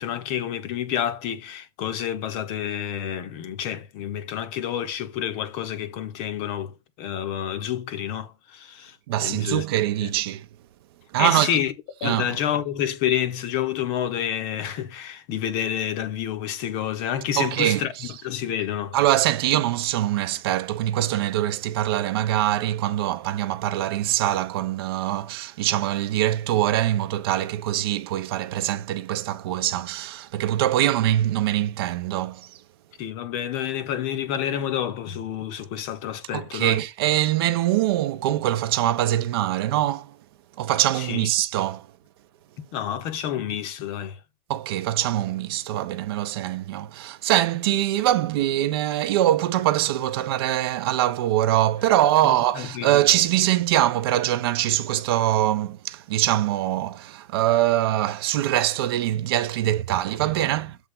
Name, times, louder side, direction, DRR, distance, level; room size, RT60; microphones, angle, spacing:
voice 1, 0.0-9.6 10.0-10.1 11.2-11.7 12.0-19.0 33.0-36.8 41.0-41.3 42.6-44.2 52.2-52.9, left 10 dB, 30° left, 0.9 m, -29 dB
voice 2, 9.1-10.5 11.1-11.6 12.0-12.3 17.4-18.1 18.9-32.5 36.3-40.2 40.6-41.9 44.5-60.8, right 13 dB, 40° right, 0.8 m, -23 dB
7.6 x 3.6 x 5.5 m
hypercardioid pair, 140°, 19 cm